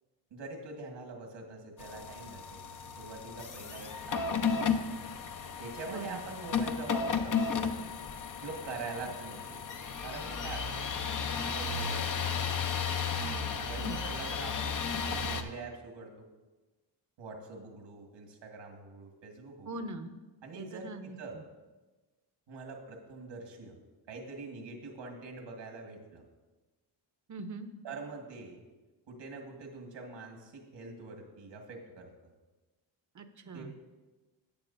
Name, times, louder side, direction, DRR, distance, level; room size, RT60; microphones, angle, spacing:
voice 1, 0.3-2.6 3.0-5.1 5.6-8.1 8.4-9.6 10.0-10.7 11.2-12.8 13.4-14.8 15.0-16.3 17.2-19.8 20.4-21.4 22.5-23.8 24.1-26.2 27.8-28.6 29.1-32.1 33.5-33.8, right 3 dB, 75° right, 2 dB, 1.8 m, -45 dB
sound 1, 1.8-15.4, left 5 dB, 45° left, 0.9 m, -34 dB
voice 2, 5.9-6.2 13.8-14.0 19.6-20.1 20.5-21.1 27.3-27.7 33.1-33.7, right 2 dB, 40° right, 9 dB, 0.9 m, -41 dB
14.0 x 9.0 x 2.6 m, 1.2 s
cardioid pair, 95°, 45 cm